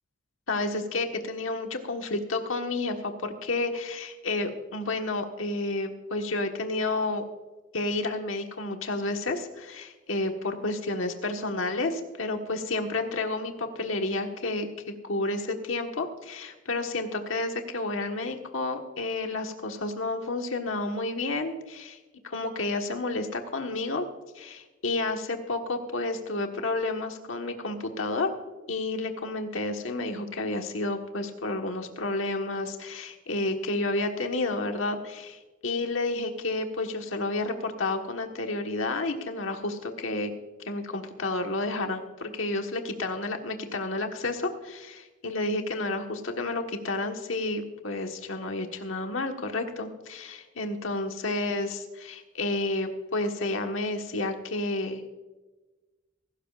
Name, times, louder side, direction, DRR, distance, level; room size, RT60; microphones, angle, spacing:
voice 1, 0.5-7.2 7.7-22.0 22.2-24.1 24.3-28.3 28.7-40.3 40.7-55.0, left 2 dB, 80° left, 4 dB, 1.4 m, -30 dB
24.5 x 13.0 x 2.5 m, 1.2 s
head